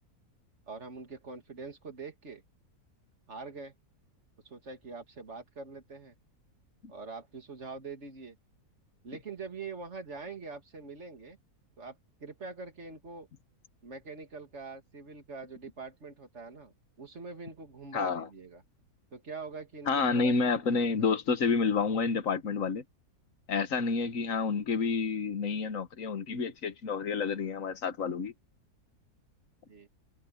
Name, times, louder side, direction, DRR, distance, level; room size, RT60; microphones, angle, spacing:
voice 1, 0.7-2.4 3.3-3.7 4.4-6.2 6.9-8.4 9.0-11.4 11.8-13.3 13.8-18.6 19.1-20.3 20.8-20.9 29.7-29.9, right 4 dB, 45° right, 2.6 m, -44 dB
voice 2, 17.9-18.3 19.9-22.8 23.5-28.3, left 4 dB, 55° left, 1.6 m, -29 dB
omnidirectional pair, 1.7 m